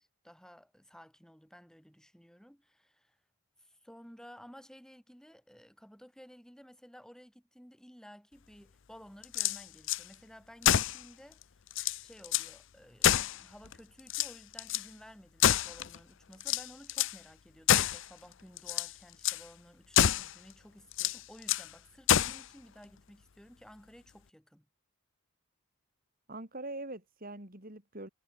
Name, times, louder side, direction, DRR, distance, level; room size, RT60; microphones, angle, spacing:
voice 1, 0.0-3.2 3.6-11.7 12.0-24.7, equal, 5° left, 6.6 m, -55 dB
sound 1, 9.2-10.0 10.6-11.0 11.4-11.5 11.7-12.5 13.0-13.7 14.1-14.9 15.4-16.0 16.4-17.2 17.7-18.1 18.6-18.9 19.2-19.4 19.9-20.3 20.9-21.7 22.1-22.4, left 10 dB, 55° left, 0.6 m, -27 dB
voice 2, 26.3-28.1, right 2 dB, 40° right, 3.8 m, -43 dB
head